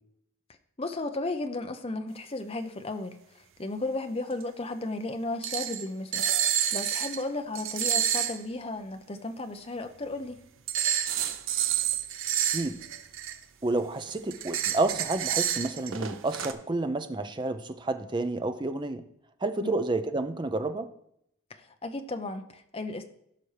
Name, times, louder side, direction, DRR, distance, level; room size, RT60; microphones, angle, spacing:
voice 1, 0.8-3.2 3.6-6.2 6.7-10.4 19.6-19.7 21.5-23.1, left 2 dB, 25° left, 7 dB, 0.7 m, -34 dB
sound 1, 4.4-4.5 5.4-5.8 6.1-7.2 7.5-8.4 10.7-13.4 14.0-16.5, right 10 dB, 60° right, 0.6 m, -29 dB
voice 2, 13.6-19.0 19.4-20.9, right 2 dB, 20° right, 9 dB, 0.5 m, -30 dB
15.5 x 5.8 x 3.3 m, 0.75 s
head